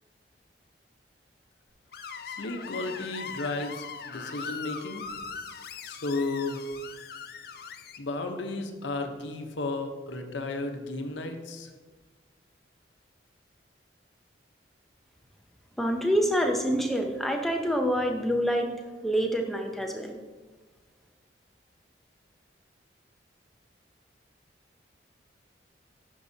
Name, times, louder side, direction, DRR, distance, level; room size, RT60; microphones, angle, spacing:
Screech, 1.9-8.0, left 6 dB, 55° left, 0.4 m, -40 dB
voice 1, 2.2-5.0 5.8-6.6 8.0-11.7, left 2 dB, 80° left, 5 dB, 0.8 m, -33 dB
voice 2, 15.8-18.7 19.0-20.2, equal, ahead, 3 dB, 0.6 m, -26 dB
10.5 x 5.5 x 2.7 m, 1.3 s
head